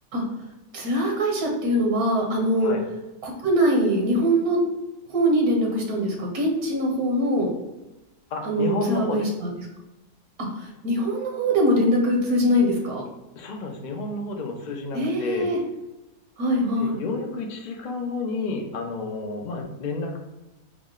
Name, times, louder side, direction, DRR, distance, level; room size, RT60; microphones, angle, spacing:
voice 1, 0.7-2.7 3.2-4.6 5.1-7.5 8.4-9.5 10.6-13.0 14.9-15.6 16.4-17.0, equal, 75° right, 0 dB, 1.3 m, -23 dB
voice 2, 8.3-9.3 13.4-15.5 16.8-20.2, left 3 dB, 80° left, 2 dB, 0.4 m, -30 dB
4.7 x 2.1 x 3.6 m, 1.0 s
omnidirectional pair, 1.6 m